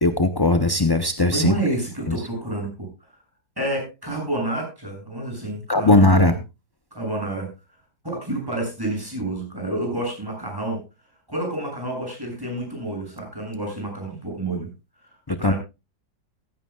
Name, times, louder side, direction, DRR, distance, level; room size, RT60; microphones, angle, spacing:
voice 1, 0.0-1.6 2.1-2.2 5.7-6.3 15.3-15.5, left 2 dB, 30° left, 8 dB, 0.4 m, -18 dB
voice 2, 1.3-2.9 3.6-6.4 6.9-7.5 8.1-10.8 11.3-14.7 15.4-15.6, right 1 dB, 10° right, 0 dB, 7.7 m, -29 dB
16.0 x 15.0 x 2.4 m, 0.26 s
omnidirectional pair, 1.8 m